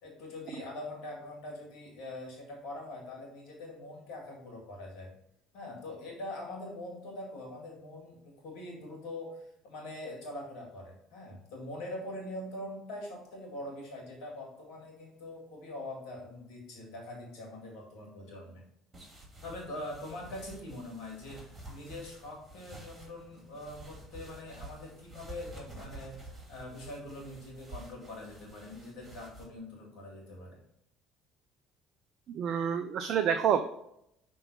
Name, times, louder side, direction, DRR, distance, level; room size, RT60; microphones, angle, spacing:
voice 1, 0.0-5.1 5.5-18.6 19.4-30.6, left 1 dB, 65° left, 0 dB, 2.1 m, -43 dB
sound 1, 18.9-29.4, right 1 dB, 30° right, 2.3 m, -50 dB
voice 2, 32.3-33.6, right 8 dB, 55° right, 8 dB, 0.4 m, -28 dB
5.7 x 3.8 x 5.3 m, 0.77 s
hypercardioid pair, 60°, 0 cm